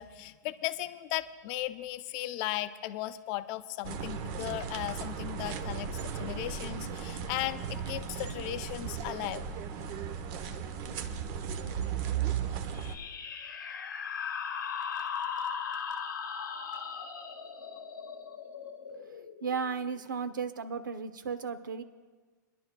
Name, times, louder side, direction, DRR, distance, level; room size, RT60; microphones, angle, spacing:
voice 1, 0.0-9.4, left 15 dB, 45° left, 11 dB, 0.6 m, -36 dB
sound 1, 3.8-13.0, right 7 dB, 40° right, 0.9 m, -36 dB
sound 2, 12.7-20.0, left 6 dB, 85° left, 1.0 m, -38 dB
voice 2, 19.4-21.8, right 6 dB, 85° right, 11 dB, 0.8 m, -34 dB
29.0 x 11.0 x 2.3 m, 1.4 s
hypercardioid pair, 120°, 10 cm